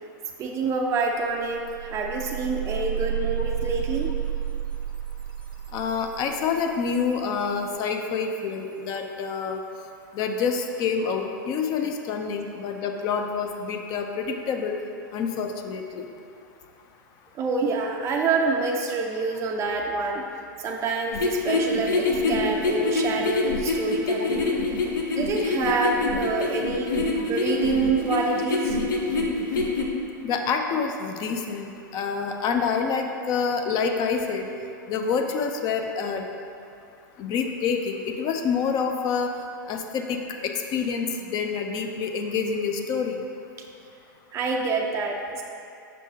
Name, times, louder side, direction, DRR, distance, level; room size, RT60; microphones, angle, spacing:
voice 1, 0.4-4.1 17.3-20.2 20.6-24.4 25.1-26.9 27.3-28.8 44.3-45.4, right 3 dB, 25° right, 0 dB, 0.4 m, -27 dB
sound 1, 0.7-0.8 1.1-7.9, right 9 dB, 80° right, 0.6 m, -32 dB
voice 2, 5.7-9.6 10.1-14.8 15.1-16.0 27.2-27.3 30.2-34.5 34.9-36.2 37.2-39.3 39.7-43.2, left 5 dB, 40° left, 4 dB, 0.5 m, -27 dB
sound 2, 21.1-29.9, left 3 dB, 75° left, 0.8 m, -25 dB
6.4 x 5.4 x 2.8 m, 2.5 s
hypercardioid pair, 110°, 11 cm